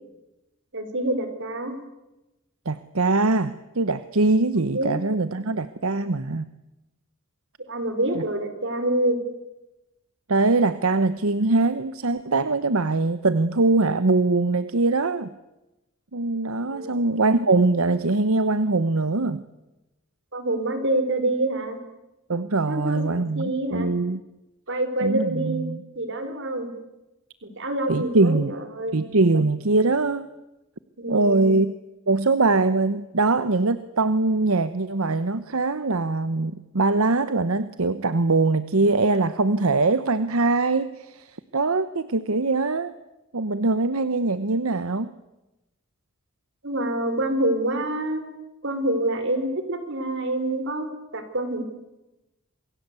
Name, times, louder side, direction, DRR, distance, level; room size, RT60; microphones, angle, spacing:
voice 1, 0.7-1.7 4.7-4.9 7.7-9.2 16.7-16.9 20.3-21.8 22.7-23.9 24.7-25.7 25.9-26.7 27.4-28.9 31.0-31.6 46.6-48.2 48.6-50.9 51.1-51.7, right 1 dB, 60° right, 8 dB, 4.9 m, -26 dB
voice 2, 2.6-6.5 8.1-8.2 10.3-15.3 16.1-19.4 22.3-24.2 25.0-25.8 27.9-28.5 28.9-30.3 31.1-31.7 32.1-42.9 43.3-45.1, right 3 dB, 80° right, 13 dB, 1.0 m, -22 dB
28.0 x 22.0 x 8.3 m, 0.98 s
head